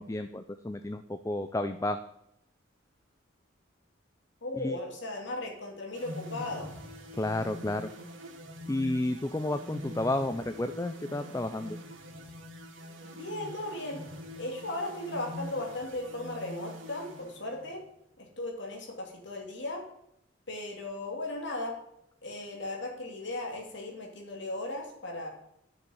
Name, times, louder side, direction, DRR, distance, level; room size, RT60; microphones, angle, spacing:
voice 1, 0.0-2.0 4.5-4.8 7.1-7.9 8.7-11.8, left 1 dB, 15° left, 9 dB, 0.4 m, -31 dB
voice 2, 4.4-6.7 13.1-14.0 14.4-17.8 18.2-19.8 20.5-21.8 22.2-25.3, left 2 dB, 70° left, 1 dB, 2.6 m, -37 dB
sound 1, 5.9-17.8, left 1 dB, 85° right, 2.3 m, -44 dB
7.1 x 6.9 x 7.8 m, 0.77 s
head